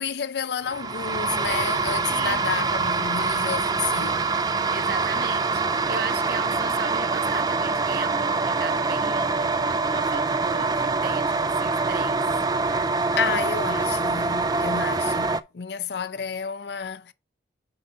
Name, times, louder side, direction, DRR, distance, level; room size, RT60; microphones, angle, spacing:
voice 1, 0.0-4.3 13.2-17.1, left 6 dB, 60° left, 0.5 m, -31 dB
sound 1, 0.7-15.4, right 3 dB, 20° right, 0.3 m, -25 dB
voice 2, 2.1-2.4 4.7-12.3, right 5 dB, 55° right, 0.8 m, -36 dB
5.4 x 4.8 x 5.3 m
head